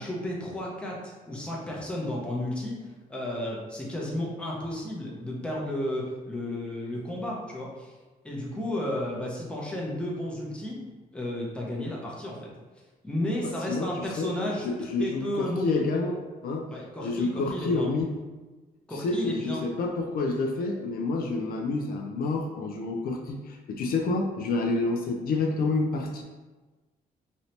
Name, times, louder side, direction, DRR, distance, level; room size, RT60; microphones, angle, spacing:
voice 1, 0.0-8.0 8.2-10.8 11.1-12.5 13.0-14.6 15.0-15.9 16.7-17.9 18.9-19.6, left 1 dB, 5° left, -3 dB, 0.6 m, -33 dB
voice 2, 13.4-16.7 17.0-18.1 18.9-26.2, left 3 dB, 65° left, 2 dB, 0.4 m, -29 dB
3.1 x 2.7 x 2.8 m, 1.2 s
cardioid pair, 150°, 16 cm